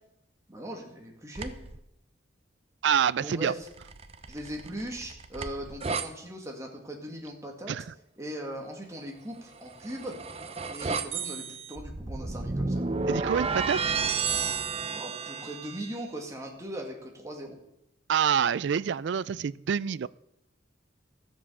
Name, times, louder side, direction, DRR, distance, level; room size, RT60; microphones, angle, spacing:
voice 1, 0.5-1.5 3.2-3.7 4.3-7.7 8.2-10.2 10.7-12.9 14.9-17.6, right 1 dB, 15° right, 1 dB, 2.1 m, -39 dB
sound 1, 1.3-1.8 3.7-6.1 9.6-16.0, right 4 dB, 30° right, 0.6 m, -32 dB
voice 2, 2.8-3.5 7.7-7.8 13.1-13.8 18.1-20.1, right 7 dB, 65° right, 19 dB, 0.3 m, -26 dB
13.5 x 7.4 x 7.0 m, 0.81 s
head